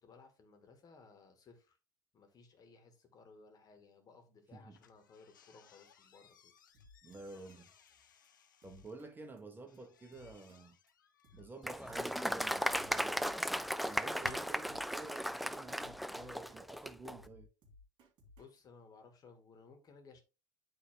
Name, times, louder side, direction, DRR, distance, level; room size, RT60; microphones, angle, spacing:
voice 1, 0.0-1.8 2.1-6.5 18.4-20.2, left 4 dB, 35° left, 2.2 m, -59 dB
sound 1, 4.7-9.0 9.7-14.5, left 8 dB, 85° left, 0.8 m, -61 dB
Drum kit, 6.7-7.2 7.5-7.6 7.9-8.0 8.2-8.3 8.6-9.1 9.4-9.5 9.7-9.8 10.1-10.6 10.9-11.0 11.2-12.1 12.4-13.6 13.9-14.0 14.2-14.3 14.6-15.1 15.4-16.6 16.9-18.6, left 2 dB, 50° right, 2.7 m, -61 dB
voice 2, 7.0-7.7 8.6-10.8 11.3-13.2 13.9-17.5, right 3 dB, 20° right, 1.1 m, -51 dB
Applause, 11.6-17.2, equal, ahead, 0.4 m, -36 dB
9.0 x 3.6 x 3.7 m
hypercardioid pair, 75°, 10 cm